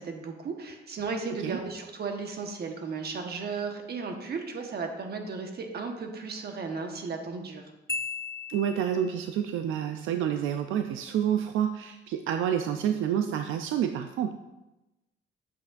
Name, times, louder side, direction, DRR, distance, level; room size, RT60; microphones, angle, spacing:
voice 1, 0.0-7.6, right 4 dB, 55° right, 4 dB, 1.2 m, -35 dB
Marimba xylophone, 7.9-9.3, left 4 dB, 15° left, 0.5 m, -36 dB
voice 2, 8.5-14.3, right 9 dB, 85° right, 7 dB, 0.4 m, -28 dB
8.2 x 7.4 x 2.5 m, 1.0 s
cardioid pair, 90°, 20 cm